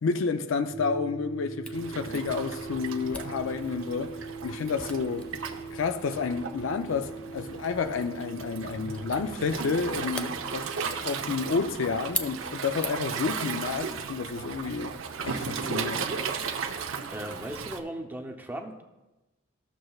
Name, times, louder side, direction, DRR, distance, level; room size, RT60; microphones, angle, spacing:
voice 1, 0.0-5.3 5.7-10.7 11.0-15.0 15.2-16.1, left 5 dB, 75° left, 0.4 m, -30 dB
sound 1, 0.7-14.7, right 4 dB, 50° left, 1.6 m, -42 dB
Camera, 1.7-13.3, left 1 dB, 5° left, 0.3 m, -43 dB
Waves surf, 1.7-17.8, right 5 dB, 90° right, 0.6 m, -36 dB
voice 2, 17.1-18.8, right 1 dB, 10° right, 0.7 m, -37 dB
14.5 x 6.4 x 2.4 m
head